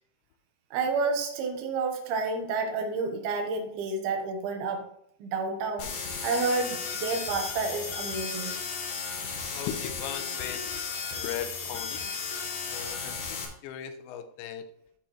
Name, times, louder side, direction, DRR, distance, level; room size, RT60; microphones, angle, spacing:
voice 1, 0.7-4.9 5.2-5.9 6.2-8.6, right 4 dB, 70° right, 3 dB, 2.8 m, -30 dB
sound 1, 5.8-13.5, left 5 dB, 65° left, 2.4 m, -35 dB
voice 2, 9.5-10.9 11.1-12.2 12.7-14.7, left 9 dB, 85° left, 9 dB, 2.9 m, -38 dB
12.5 x 4.4 x 3.0 m, 0.68 s
omnidirectional pair, 5.1 m